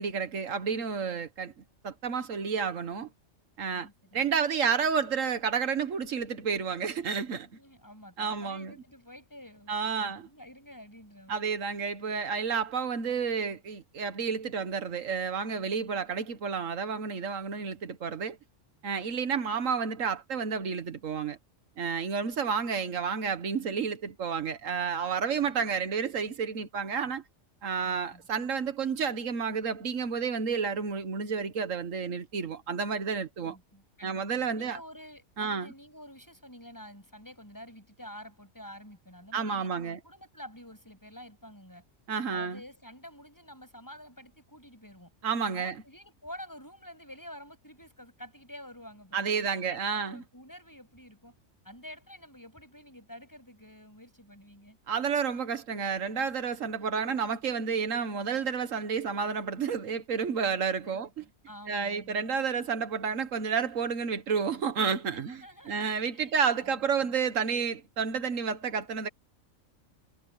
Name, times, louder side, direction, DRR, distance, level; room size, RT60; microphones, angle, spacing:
voice 1, 0.0-1.5 1.8-3.1 3.6-7.5 8.2-8.7 9.7-10.3 11.3-18.4 18.8-21.4 21.8-27.2 27.6-33.6 34.0-34.8 35.4-35.7 39.3-40.0 42.1-42.6 45.2-45.8 49.1-50.2 54.9-61.2 61.7-69.1, right 6 dB, 80° right, 1.6 m, -30 dB
voice 2, 3.7-4.3 7.5-11.4 27.8-28.2 33.4-34.2 34.5-41.8 42.3-45.1 45.5-51.4 51.6-54.8 56.6-56.9 60.8-62.3 65.0-65.8 66.1-67.2, equal, 15° left, 7.9 m, -49 dB
omnidirectional pair, 1.3 m